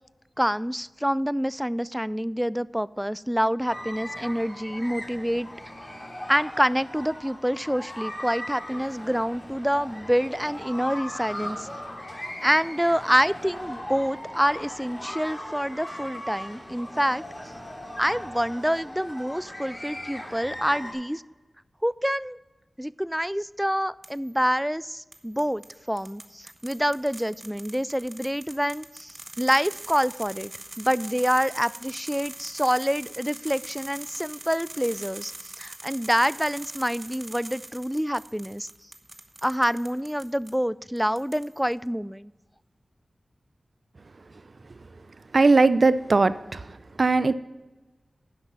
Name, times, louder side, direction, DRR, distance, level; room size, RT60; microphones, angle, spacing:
voice 1, 0.4-5.5 6.3-11.7 12.4-17.2 18.0-21.2 21.8-22.4 22.8-30.5 30.8-38.7 39.4-42.3, equal, 5° right, 19 dB, 0.3 m, -27 dB
sound 1, 3.7-20.9, left 1 dB, 20° left, 2.9 m, -38 dB
sound 2, 24.0-24.4 25.1-40.5 41.0-41.7, right 2 dB, 35° right, 1.0 m, -43 dB
voice 2, 45.3-46.7 47.0-47.3, right 3 dB, 60° right, 14 dB, 0.5 m, -19 dB
10.5 x 6.0 x 5.4 m, 1.2 s
cardioid pair, 40°, 0 cm